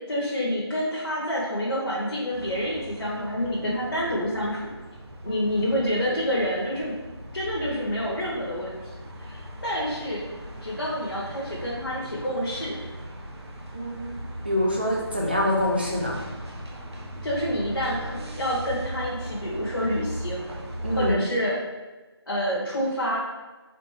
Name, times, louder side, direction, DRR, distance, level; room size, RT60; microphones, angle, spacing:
voice 1, 0.1-4.6 5.2-6.9 7.3-8.8 9.2-10.2 10.6-12.8 17.2-20.5 20.9-21.5 22.3-23.2, equal, 55° left, -6 dB, 1.1 m, -28 dB
sound 1, 2.3-21.1, equal, 75° right, 1.0 m, -38 dB
voice 2, 13.7-14.1 14.4-16.2 20.8-21.2, left 1 dB, 20° right, -3 dB, 0.5 m, -25 dB
4.3 x 2.6 x 4.6 m, 1.2 s
figure-of-eight pair, 170°, 14 cm